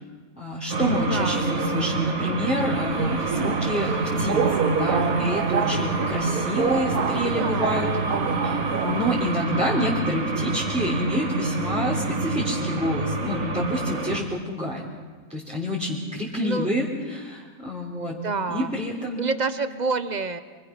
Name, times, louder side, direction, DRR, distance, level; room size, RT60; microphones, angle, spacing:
voice 1, 0.4-7.9 8.4-14.9 15.3-18.2 18.5-19.2, equal, 5° right, -5 dB, 3.5 m, -28 dB
sound 1, 0.7-14.2, right 2 dB, 55° right, 2.1 m, -27 dB
voice 2, 1.1-1.5 6.9-7.9 16.4-16.7 18.2-18.7 19.2-20.4, right 4 dB, 30° right, 10 dB, 1.1 m, -28 dB
Subway metro underground, 2.6-9.4, right 7 dB, 85° right, 1.4 m, -28 dB
28.5 x 23.0 x 6.1 m, 1.4 s
omnidirectional pair, 1.5 m